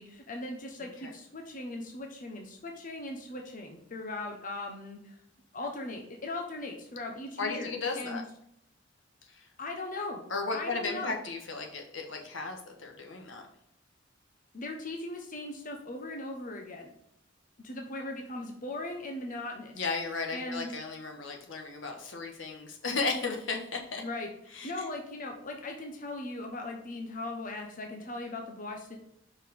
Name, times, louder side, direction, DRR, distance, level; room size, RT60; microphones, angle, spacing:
voice 1, 0.0-5.2 5.5-8.2 9.6-10.2 10.5-11.2 14.5-16.9 17.6-19.7 20.3-20.7 24.0-24.3 24.6-29.0, left 2 dB, 45° left, 2 dB, 1.0 m, -39 dB
voice 2, 7.4-8.2 9.2-9.5 10.3-13.5 19.7-24.0 24.5-24.8, left 4 dB, 80° left, 3 dB, 1.3 m, -35 dB
5.7 x 4.8 x 5.3 m, 0.76 s
head